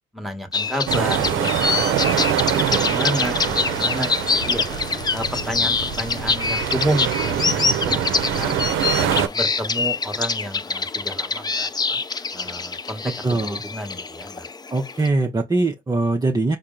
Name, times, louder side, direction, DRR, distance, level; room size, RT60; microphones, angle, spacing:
voice 1, 0.1-4.6 5.1-8.0 8.3-8.5 8.9-12.0 12.3-13.0 13.3-14.5, equal, ahead, 1.1 m, -30 dB
sound 1, 0.5-15.1, left 4 dB, 20° left, 0.4 m, -25 dB
sound 2, 0.9-9.3, right 10 dB, 80° right, 0.6 m, -24 dB
voice 2, 13.0-13.6 14.7-16.6, right 2 dB, 20° right, 0.7 m, -22 dB
4.3 x 2.0 x 3.7 m
cardioid pair, 90°, 20 cm